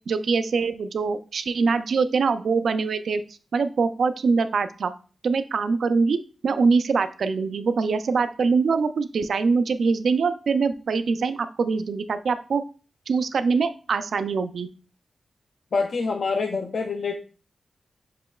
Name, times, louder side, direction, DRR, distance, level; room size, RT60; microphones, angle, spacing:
voice 1, 0.1-3.2 3.5-4.9 5.2-12.6 13.1-14.7, right 4 dB, 75° right, 11 dB, 0.3 m, -23 dB
voice 2, 15.7-17.1, left 4 dB, 65° left, 3 dB, 0.4 m, -26 dB
6.6 x 2.9 x 2.3 m, 0.37 s
wide cardioid pair, 105°, 0 cm